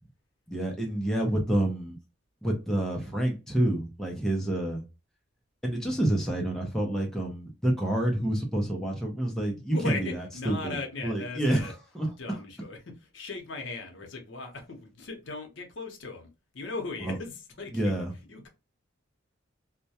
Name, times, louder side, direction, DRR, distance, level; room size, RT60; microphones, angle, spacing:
voice 1, 0.5-2.0 2.4-4.8 5.6-10.8 11.0-12.1 17.0-17.1 17.7-18.1, right 1 dB, ahead, 0.5 m, -28 dB
voice 2, 9.5-11.7 12.2-16.3 16.5-18.5, left 3 dB, 65° left, 0.7 m, -38 dB
2.2 x 2.1 x 2.7 m
head